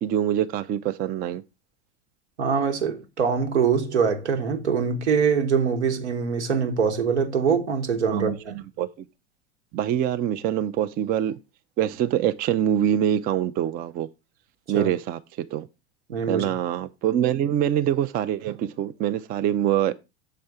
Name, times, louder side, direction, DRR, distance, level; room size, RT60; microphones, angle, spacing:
voice 1, 0.0-1.4 8.1-8.4 8.8-9.1 9.7-11.3 11.8-14.1 14.7-15.2 15.5-15.7 16.3-19.9, right 10 dB, 25° right, 0.4 m, -24 dB
voice 2, 2.4-8.5 14.7-14.9 16.1-16.5, right 6 dB, 75° right, 1.2 m, -23 dB
6.7 x 4.2 x 4.6 m
figure-of-eight pair, 85°, 35 cm